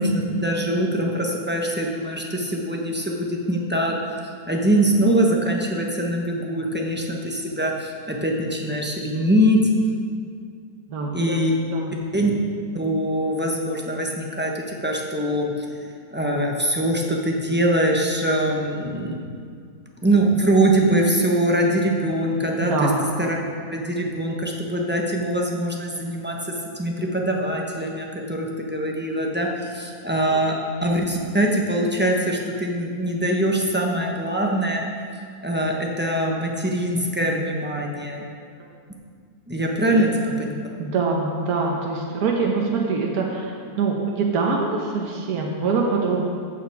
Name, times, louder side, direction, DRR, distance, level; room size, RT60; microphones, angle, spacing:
voice 1, 0.0-9.7 11.1-11.5 12.1-12.3 12.7-15.5 16.1-19.2 20.0-22.9 23.2-23.3 23.7-34.8 35.4-38.3 39.5-40.5, right 1 dB, 10° right, -1 dB, 0.9 m, -23 dB
voice 2, 10.9-11.4 11.7-11.9 22.6-23.0 30.3-30.4 39.9-40.0 40.8-46.3, right 4 dB, 75° right, 0 dB, 1.5 m, -24 dB
15.0 x 6.0 x 4.7 m, 2.2 s
omnidirectional pair, 1.6 m